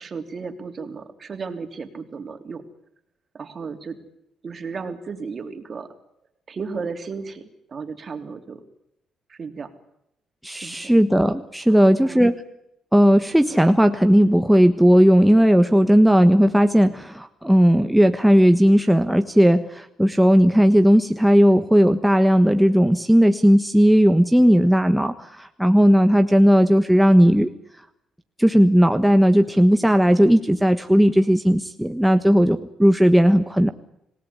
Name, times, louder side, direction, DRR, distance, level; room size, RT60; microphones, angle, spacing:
voice 1, 0.0-2.6 3.3-4.0 4.4-5.9 6.5-8.6 9.3-9.7 10.5-11.0 11.7-12.3, right 5 dB, 45° right, 7 dB, 3.4 m, -34 dB
voice 2, 10.4-12.3 12.9-27.5 28.4-33.7, equal, 5° right, 7 dB, 1.3 m, -16 dB
26.5 x 18.0 x 9.8 m, 0.80 s
cardioid pair, 90°, 0 cm